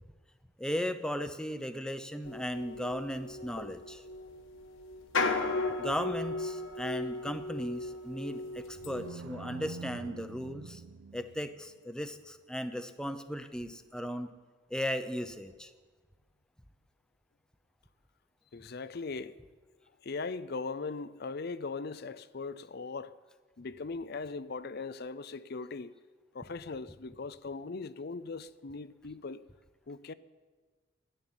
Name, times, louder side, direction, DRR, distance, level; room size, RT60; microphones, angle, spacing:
voice 1, 0.6-4.0 5.8-10.8 11.1-14.3 14.7-15.7, equal, 5° left, 0.7 m, -36 dB
sound 1, 2.2-9.1, left 3 dB, 70° left, 1.3 m, -36 dB
sound 2, 8.5-11.7, right 4 dB, 85° right, 0.6 m, -46 dB
voice 2, 18.5-19.4 20.0-23.1 23.6-25.9 26.3-29.4 29.9-30.1, left 4 dB, 50° left, 0.6 m, -39 dB
13.0 x 11.0 x 9.2 m
head